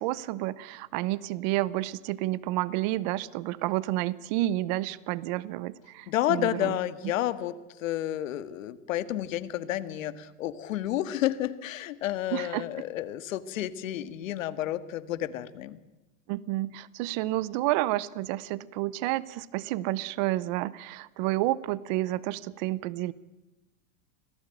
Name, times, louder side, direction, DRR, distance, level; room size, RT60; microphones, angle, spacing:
voice 1, 0.0-6.8 12.3-12.6 16.3-23.1, right 16 dB, 35° right, 20 dB, 0.7 m, -30 dB
voice 2, 6.1-15.8, left 13 dB, 70° left, 13 dB, 1.8 m, -31 dB
26.0 x 18.0 x 9.1 m, 1.0 s
supercardioid pair, 170°, 40 cm